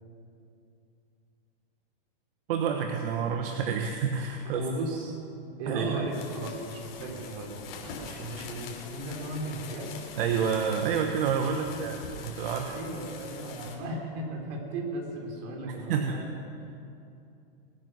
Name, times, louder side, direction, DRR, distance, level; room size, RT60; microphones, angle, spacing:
voice 1, 2.5-4.6 5.7-6.0 10.2-12.0 12.2-12.7 15.6-16.2, right 7 dB, 65° right, 4 dB, 1.3 m, -28 dB
voice 2, 4.4-5.2 5.6-10.0 11.6-12.0 12.6-16.3, right 1 dB, 50° right, 0 dB, 4.1 m, -36 dB
sound 1, 6.0-13.7, left 5 dB, 75° left, 3.4 m, -44 dB
22.0 x 9.6 x 6.5 m, 2.6 s
supercardioid pair, 150°, 30 cm